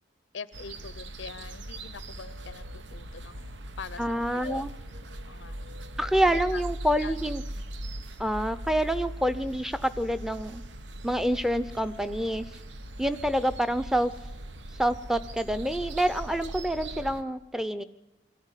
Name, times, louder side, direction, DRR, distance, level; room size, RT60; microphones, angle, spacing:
voice 1, 0.3-4.0 4.3-4.7 5.0-5.6 6.2-6.6 7.0-7.2, left 5 dB, 75° left, 17 dB, 0.7 m, -43 dB
sound 1, 0.5-17.2, right 1 dB, 70° right, 1.1 m, -40 dB
voice 2, 4.0-4.7 6.0-7.4 8.2-10.6 11.0-12.5 13.0-14.1 14.8-17.8, equal, 5° right, 11 dB, 0.7 m, -27 dB
22.0 x 14.5 x 9.8 m, 0.96 s
head